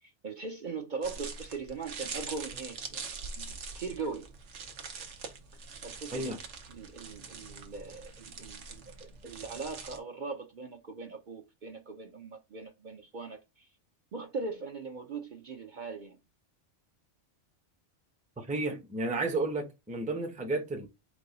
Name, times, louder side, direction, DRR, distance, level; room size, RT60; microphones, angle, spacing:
voice 1, 0.0-3.1 3.4-4.3 5.8-6.4 6.7-13.7 14.1-16.2, right 4 dB, 50° right, 0.7 m, -40 dB
sound 1, 1.0-10.0, right 5 dB, 80° right, 1.2 m, -43 dB
voice 2, 18.4-20.9, right 2 dB, 10° right, 0.5 m, -32 dB
4.7 x 2.3 x 3.9 m
omnidirectional pair, 1.2 m